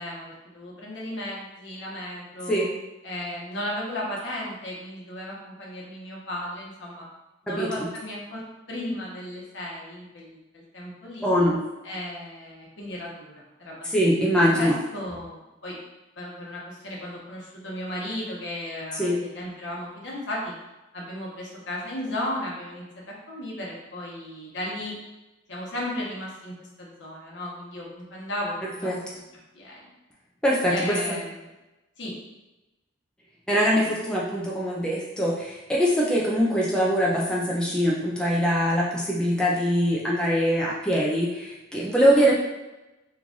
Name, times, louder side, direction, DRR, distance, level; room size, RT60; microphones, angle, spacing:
voice 1, 0.0-2.6 3.0-7.1 7.4-8.4 8.7-11.3 11.8-13.3 13.6-13.9 14.3-15.8 16.2-20.5 20.9-24.9 25.5-29.2 29.5-29.8 30.7-31.5 32.0-32.1 42.0-42.3, left 1 dB, 70° left, -4 dB, 1.0 m, -35 dB
voice 2, 7.5-7.9 11.2-11.6 13.8-14.8 18.9-19.2 28.8-29.0 30.4-31.2 33.5-42.3, equal, 5° left, -5 dB, 0.4 m, -23 dB
3.1 x 2.4 x 3.8 m, 1.0 s
head